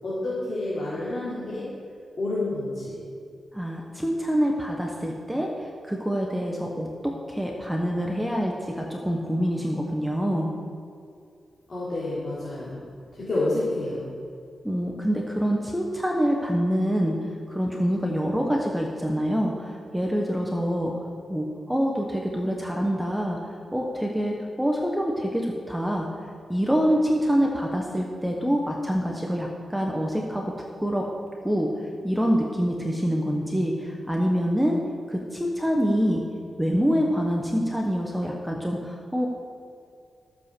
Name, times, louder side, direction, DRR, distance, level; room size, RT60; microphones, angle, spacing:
voice 1, 0.0-1.6 2.2-3.0 11.7-12.8 13.1-14.1, left 2 dB, 35° left, -10 dB, 3.7 m, -29 dB
voice 2, 3.5-10.5 14.6-17.2 17.5-20.9 21.3-23.4 23.7-26.1 26.5-30.5 30.8-31.1 31.4-31.7 32.0-34.8 35.1-36.2 36.6-39.3, equal, ahead, 0 dB, 0.9 m, -26 dB
14.0 x 7.2 x 6.8 m, 2.4 s
wide cardioid pair, 165°, 0 cm